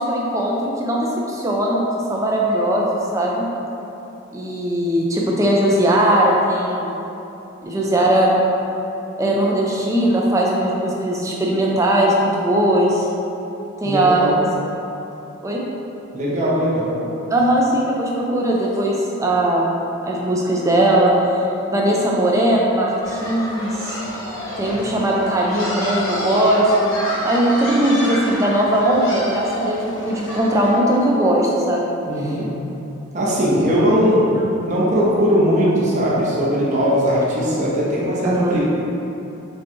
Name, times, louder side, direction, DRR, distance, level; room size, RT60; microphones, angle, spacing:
voice 1, 0.0-3.5 4.3-6.9 7.6-8.3 9.2-13.1 13.8-14.4 15.4-15.6 17.3-19.7 20.0-21.4 21.7-23.7 24.6-31.9 38.2-38.6, right 1 dB, 15° right, -3 dB, 0.4 m, -19 dB
voice 2, 13.8-14.4 16.1-17.0 32.1-32.4 33.1-34.4 34.6-38.6, equal, 35° right, -7 dB, 0.8 m, -19 dB
sound 1, 23.0-30.8, left 1 dB, 75° left, 1.2 m, -29 dB
6.2 x 2.3 x 3.0 m, 2.9 s
head